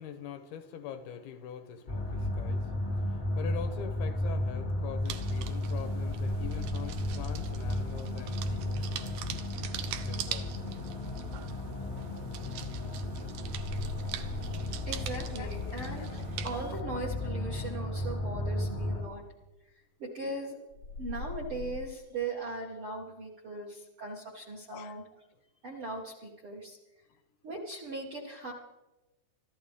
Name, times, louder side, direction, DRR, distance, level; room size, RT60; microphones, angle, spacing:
voice 1, 0.0-9.3 10.0-10.5 15.1-15.7 16.0-16.2 16.7-16.9 24.7-25.0, left 8 dB, 75° left, 2.5 m, -44 dB
sound 1, 1.9-19.0, left 1 dB, 30° left, 0.9 m, -34 dB
sound 2, 5.0-16.8, right 10 dB, 75° right, 2.4 m, -43 dB
sound 3, 13.3-18.4 20.7-21.9, left 4 dB, 50° left, 1.3 m, -44 dB
voice 2, 14.2-16.1 16.4-19.2 20.0-20.6 21.0-25.0 25.6-26.8 27.4-28.5, right 2 dB, 55° right, 1.5 m, -39 dB
25.0 x 13.5 x 3.6 m
omnidirectional pair, 4.8 m